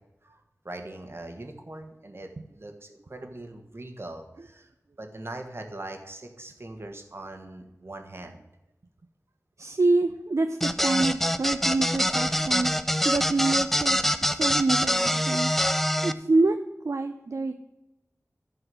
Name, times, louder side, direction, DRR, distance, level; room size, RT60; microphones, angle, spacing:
voice 1, 0.2-4.7 5.0-8.4, right 2 dB, 50° right, 4 dB, 1.6 m, -41 dB
voice 2, 9.6-12.7 13.0-15.5 16.0-16.6 16.8-17.5, right 3 dB, 65° right, 7 dB, 0.6 m, -26 dB
sound 1, 10.6-16.1, equal, 5° left, 0.6 m, -25 dB
11.0 x 4.8 x 7.7 m, 0.96 s
wide cardioid pair, 50°, 5 cm